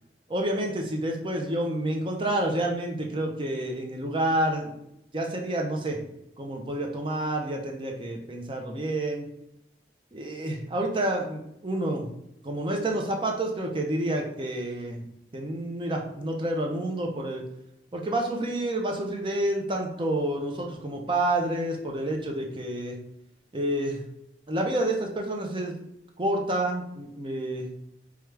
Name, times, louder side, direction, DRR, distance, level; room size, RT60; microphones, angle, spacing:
voice 1, 0.3-4.7 5.1-6.0 6.4-9.2 10.1-12.1 12.4-15.0 15.3-17.4 17.9-23.0 23.5-24.0 24.5-25.7 26.2-27.7, right 1 dB, 25° right, 1 dB, 0.6 m, -29 dB
4.6 x 2.4 x 3.2 m, 0.79 s
head